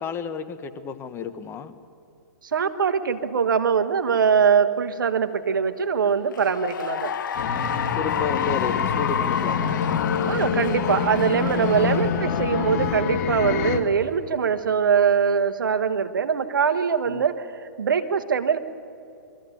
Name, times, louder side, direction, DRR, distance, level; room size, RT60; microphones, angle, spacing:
voice 1, 0.0-1.7 8.0-9.8 17.1-17.3, left 5 dB, 20° left, 9 dB, 1.1 m, -31 dB
voice 2, 2.5-7.1 10.3-18.6, right 6 dB, 80° right, 9 dB, 1.3 m, -22 dB
Cheering / Applause, 6.2-12.9, left 8 dB, 70° left, 0.9 m, -30 dB
sound 1, 7.4-13.8, left 7 dB, 50° left, 1.6 m, -26 dB
23.0 x 14.0 x 8.5 m, 2.6 s
hypercardioid pair, 125°, 11 cm